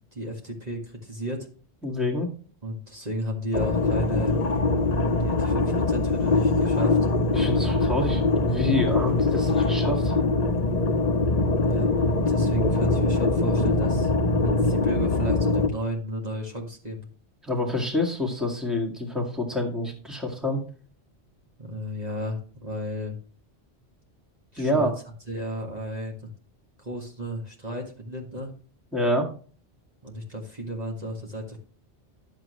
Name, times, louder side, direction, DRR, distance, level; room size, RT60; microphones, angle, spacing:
voice 1, 0.1-1.5 2.6-4.3 5.1-7.0 11.7-14.1 14.4-17.1 21.6-23.2 24.5-24.9 25.3-26.3 26.8-28.5 30.0-31.6, equal, 35° right, 0 dB, 1.9 m, -33 dB
voice 2, 1.8-2.3 7.3-10.1 17.4-20.6 24.6-24.9 28.9-29.3, left 1 dB, ahead, 1 dB, 1.9 m, -27 dB
sound 1, 3.5-15.7, left 2 dB, 40° left, 0.9 m, -23 dB
11.5 x 7.4 x 3.1 m, 0.40 s
omnidirectional pair, 1.2 m